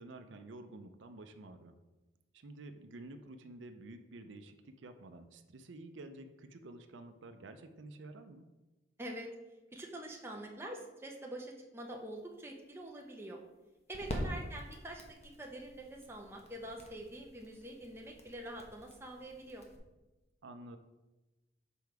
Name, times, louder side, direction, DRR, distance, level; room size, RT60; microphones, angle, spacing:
voice 1, 0.0-1.8 2.3-8.5 14.1-14.5 20.4-20.8, right 2 dB, 85° right, 8 dB, 0.5 m, -50 dB
voice 2, 9.0-9.3 9.7-13.4 13.9-19.6, right 1 dB, 15° right, 0 dB, 0.9 m, -45 dB
sound 1, 11.8-19.8, equal, 35° left, 1.0 m, -46 dB
6.9 x 4.6 x 4.6 m, 1.1 s
head